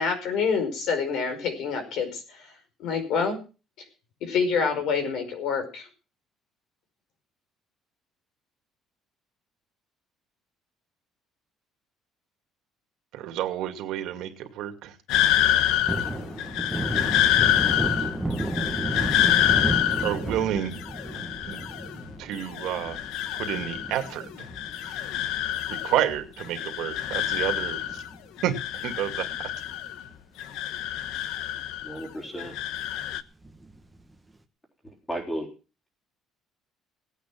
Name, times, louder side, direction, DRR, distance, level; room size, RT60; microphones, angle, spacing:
voice 1, 0.0-2.4 2.8-3.4 4.2-5.9, left 5 dB, 60° left, 7 dB, 5.1 m, -27 dB
voice 2, 13.1-15.0 20.0-20.8 21.4-21.6 22.2-23.0 23.3-24.5 24.8-25.0 25.7-28.0 28.4-29.5, right 11 dB, 65° right, 6 dB, 2.4 m, -30 dB
sound 1, 15.1-22.1 22.4-24.1 24.4-26.1 26.4-28.1 28.4-30.1 30.4-32.1 32.4-33.2, left 11 dB, 80° left, 0.9 m, -27 dB
Thunder, 15.5-26.2 26.6-26.7 27.0-28.5 28.8-29.0 29.3-30.1 30.5-30.6 31.0-31.1 33.4-34.0, right 1 dB, 5° right, 1.2 m, -33 dB
voice 3, 31.8-32.6 34.8-35.5, right 1 dB, 10° left, 3 dB, 3.6 m, -34 dB
18.0 x 9.1 x 6.1 m, 0.34 s
cardioid pair, 175°, 0 cm